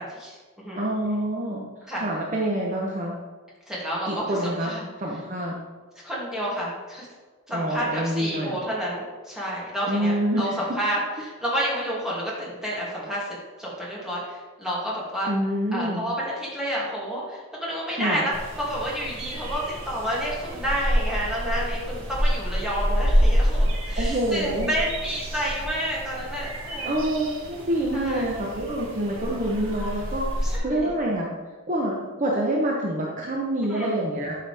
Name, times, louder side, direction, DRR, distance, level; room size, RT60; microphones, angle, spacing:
voice 1, 0.0-0.9 1.9-2.0 3.7-4.8 6.0-7.1 7.5-13.3 13.6-15.3 15.7-26.9 27.9-28.3 30.4-30.9 33.7-34.0, equal, 5° right, -7 dB, 2.6 m, -30 dB
voice 2, 0.8-1.7 2.0-3.1 4.1-4.7 5.0-5.6 7.5-8.6 9.9-10.5 15.3-16.0 17.9-18.2 24.0-24.8 26.8-31.3 31.7-34.3, right 1 dB, 35° right, -2 dB, 1.0 m, -26 dB
sound 1, 18.3-30.6, equal, 70° right, 1.8 m, -27 dB
11.5 x 6.1 x 3.5 m, 1.4 s
head